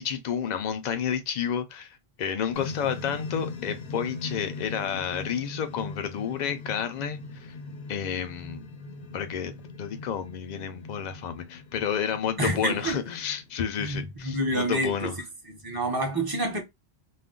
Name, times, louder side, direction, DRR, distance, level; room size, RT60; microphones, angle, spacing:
voice 1, 0.0-7.5 7.9-8.7 9.1-9.5 9.8-15.2, left 8 dB, 55° left, 0.5 m, -30 dB
sound 1, 2.5-14.0, left 3 dB, 80° left, 1.0 m, -40 dB
voice 2, 12.4-13.0 13.8-15.1 15.6-16.6, right 1 dB, 25° right, 0.6 m, -28 dB
2.4 x 2.1 x 3.6 m
omnidirectional pair, 1.1 m